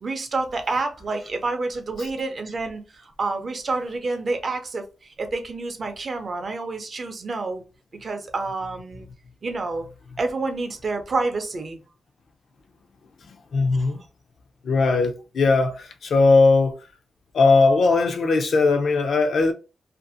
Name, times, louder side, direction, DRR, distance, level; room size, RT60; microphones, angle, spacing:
voice 1, 0.0-7.6 8.0-9.1 9.4-9.9 10.2-11.8 13.7-13.9, right 3 dB, 35° right, 0.5 m, -28 dB
voice 2, 13.5-14.0 14.6-16.7 17.3-19.5, left 3 dB, 55° left, 0.4 m, -19 dB
2.5 x 2.3 x 2.6 m
wide cardioid pair, 180°, 0 cm